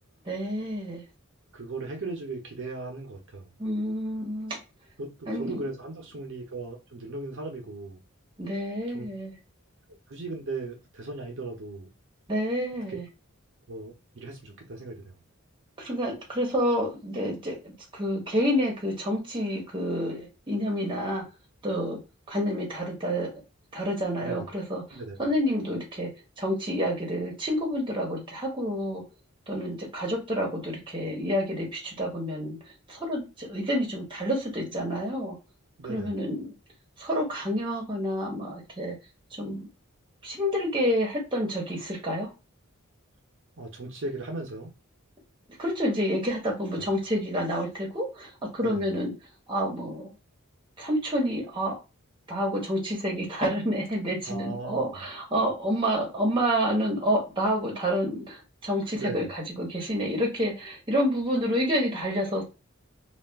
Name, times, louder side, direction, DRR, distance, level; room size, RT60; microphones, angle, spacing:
voice 1, 0.2-1.0 3.6-4.6 5.3-5.6 8.4-9.3 12.3-13.0 15.8-21.2 21.6-22.0 22.3-23.4 23.7-26.1 26.4-29.0 29.5-32.6 32.9-35.4 35.9-36.5 37.0-38.9 39.4-39.7 40.2-42.3 45.6-49.1 49.5-50.1 50.8-51.7 52.3-62.4, equal, 25° right, 0.9 m, -28 dB
voice 2, 1.5-3.5 5.0-8.0 8.9-9.1 10.1-11.9 12.9-13.0 13.7-15.1 24.2-24.5 24.9-25.2 35.8-36.2 43.6-44.7 46.7-46.9 48.6-48.8 54.3-55.0 58.9-59.3, right 3 dB, 60° right, 0.6 m, -37 dB
2.4 x 2.3 x 3.4 m
head